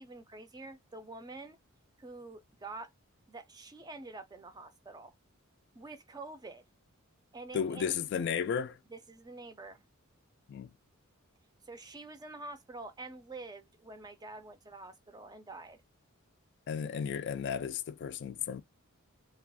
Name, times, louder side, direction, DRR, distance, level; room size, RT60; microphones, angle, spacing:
voice 1, 0.0-1.6 2.0-2.9 3.3-5.1 5.7-6.6 7.3-7.9 8.9-9.8 11.6-15.8, right 2 dB, 20° right, 0.5 m, -47 dB
voice 2, 7.5-8.8 10.5-10.7 16.7-18.6, left 7 dB, 55° left, 0.3 m, -34 dB
2.4 x 2.3 x 3.5 m
head